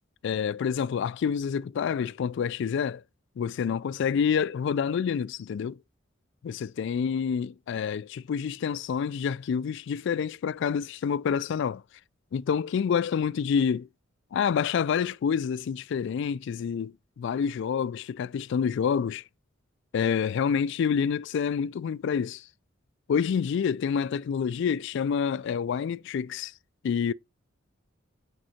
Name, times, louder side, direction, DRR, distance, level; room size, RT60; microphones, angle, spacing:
voice 1, 0.2-3.0 3.4-5.8 6.4-11.8 12.3-13.9 14.3-19.2 19.9-22.4 23.1-26.5 26.8-27.1, left 7 dB, 65° left, 0.3 m, -28 dB
6.3 x 5.2 x 4.3 m
head